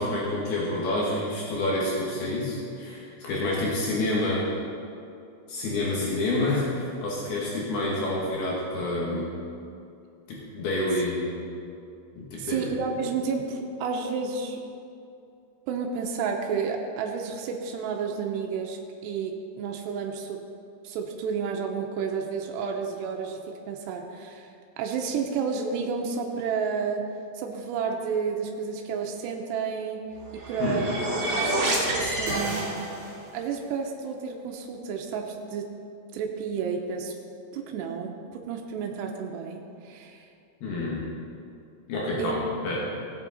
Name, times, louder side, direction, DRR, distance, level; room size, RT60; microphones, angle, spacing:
voice 1, 0.0-4.4 5.5-9.3 10.3-11.4 12.2-12.7 30.6-30.9 40.6-41.1 41.9-42.4 42.6-42.8, left 2 dB, 70° left, -5 dB, 3.5 m, -28 dB
voice 2, 12.4-14.6 15.7-20.4 20.8-23.4 23.7-27.0 27.3-30.0 30.3-30.9 31.4-32.9 33.3-35.6 36.1-37.1 37.5-40.3 42.2-42.4, right 6 dB, 85° right, 2 dB, 2.9 m, -31 dB
sound 1, 30.2-33.2, right 1 dB, 35° right, 2.4 m, -28 dB
17.5 x 8.0 x 4.2 m, 2.6 s
omnidirectional pair, 4.9 m